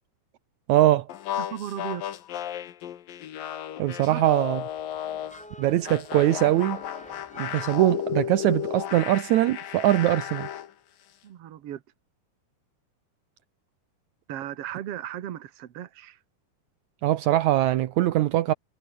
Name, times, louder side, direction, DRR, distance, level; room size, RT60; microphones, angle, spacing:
voice 1, 0.7-1.1 3.8-4.6 5.6-6.8 7.4-10.5 17.0-18.5, right 14 dB, 75° right, 1.7 m, -22 dB
sound 1, 1.1-5.4 5.9-10.7, left 11 dB, 65° left, 3.4 m, -34 dB
voice 2, 1.4-2.1 4.1-4.2 11.2-11.8 14.3-16.2, right 11 dB, 55° right, 1.8 m, -36 dB
sound 2, 4.3-8.5, equal, ahead, 6.1 m, -48 dB
omnidirectional pair, 4.4 m